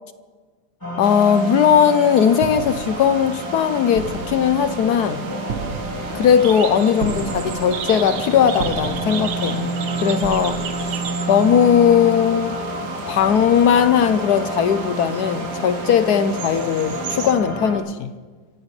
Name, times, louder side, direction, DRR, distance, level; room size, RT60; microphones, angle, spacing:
sound 1, 0.8-17.8, right 1 dB, 10° left, 2.7 m, -29 dB
voice 1, 1.0-5.2 6.1-9.7 10.0-11.0 11.3-12.5 13.1-18.1, left 8 dB, 70° left, 0.9 m, -18 dB
sound 2, 1.0-17.3, right 7 dB, 80° right, 2.0 m, -35 dB
sound 3, 2.4-11.9, right 6 dB, 60° right, 0.8 m, -35 dB
25.0 x 15.5 x 3.2 m
omnidirectional pair, 2.4 m